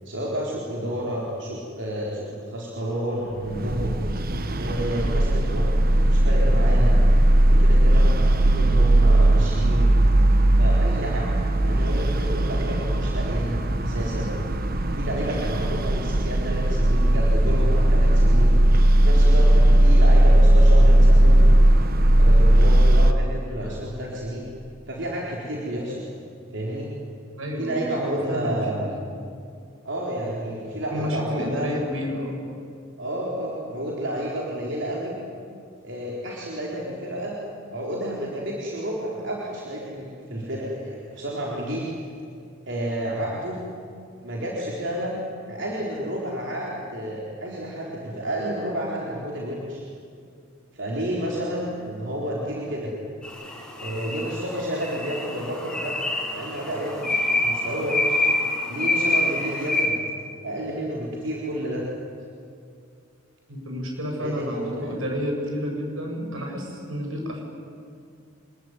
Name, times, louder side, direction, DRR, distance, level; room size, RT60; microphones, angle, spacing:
voice 1, 0.0-4.0 4.6-5.7 6.1-7.0 7.5-10.0 10.6-11.3 11.6-14.3 14.9-18.6 19.0-21.6 22.2-24.5 24.9-26.0 26.5-26.9 27.6-28.9 29.8-31.7 33.0-35.2 35.8-37.3 37.7-41.9 42.7-43.6 44.2-49.8 50.7-52.9 53.8-56.0 56.3-58.2 58.7-60.0 60.4-61.8 64.2-64.9, right 1 dB, 60° right, -4 dB, 4.3 m, -30 dB
sound 1, 3.5-23.1, right 1 dB, 45° right, 1.3 m, -17 dB
voice 2, 27.4-28.9 30.9-32.4 63.5-67.4, equal, 85° right, 1 dB, 7.3 m, -30 dB
sound 2, 53.2-59.8, left 2 dB, 5° left, 6.0 m, -26 dB
26.0 x 21.5 x 9.9 m, 2.4 s
head